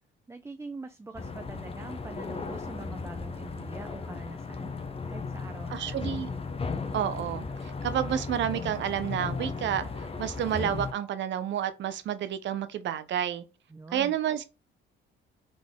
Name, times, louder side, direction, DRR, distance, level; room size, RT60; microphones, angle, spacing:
voice 1, 0.3-4.7 5.0-6.1 13.7-14.2, right 3 dB, 15° right, 0.4 m, -44 dB
sound 1, 1.2-10.9, left 4 dB, 30° left, 0.8 m, -36 dB
voice 2, 5.7-6.3 6.9-9.8 10.2-13.4 13.9-14.5, right 10 dB, 65° right, 0.7 m, -30 dB
3.8 x 3.7 x 3.6 m
cardioid pair, 90°, 20 cm